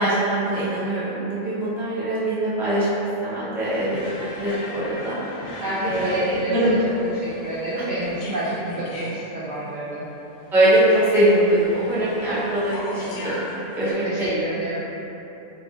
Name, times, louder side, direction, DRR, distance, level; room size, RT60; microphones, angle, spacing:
voice 1, 0.0-2.9 3.2-4.0 4.4-5.2 5.8-6.7 10.5-13.4 13.7-14.4, right 1 dB, 5° right, -10 dB, 0.4 m, -22 dB
sound 1, 3.7-13.9, left 1 dB, 70° left, 0.9 m, -37 dB
voice 2, 5.6-6.8 7.1-10.1 13.9-14.8, right 1 dB, 65° right, -8 dB, 0.5 m, -29 dB
3.0 x 2.5 x 3.6 m, 3.0 s
omnidirectional pair, 1.3 m